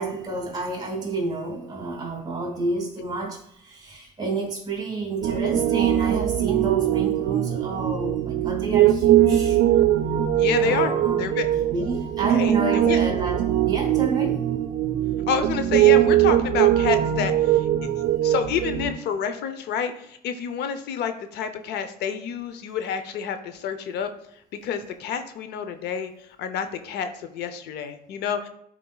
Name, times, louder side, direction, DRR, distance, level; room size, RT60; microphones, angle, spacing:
voice 1, 0.0-9.6 10.6-11.3 11.7-14.4, right 3 dB, 25° right, 2.2 m, -30 dB
Piano, 5.2-18.9, right 12 dB, 80° right, 0.5 m, -21 dB
voice 2, 10.3-10.9 11.2-11.5 12.3-13.0 15.3-17.7 18.2-24.1 24.6-26.1 26.4-28.5, left 7 dB, 80° left, 0.7 m, -28 dB
10.5 x 4.5 x 2.3 m
cardioid pair, 110°, 17 cm